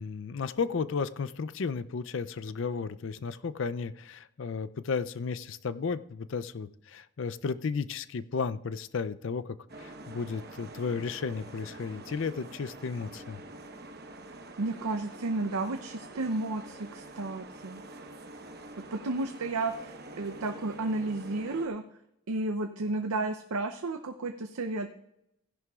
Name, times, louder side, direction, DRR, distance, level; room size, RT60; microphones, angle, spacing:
voice 1, 0.0-13.4, left 5 dB, 60° left, 15 dB, 0.4 m, -34 dB
sound 1, 9.7-21.7, right 2 dB, 45° right, 1.0 m, -46 dB
voice 2, 14.6-17.8 18.9-21.8 22.3-24.9, right 2 dB, 90° right, 6 dB, 0.6 m, -32 dB
15.5 x 11.0 x 2.4 m, 0.82 s
head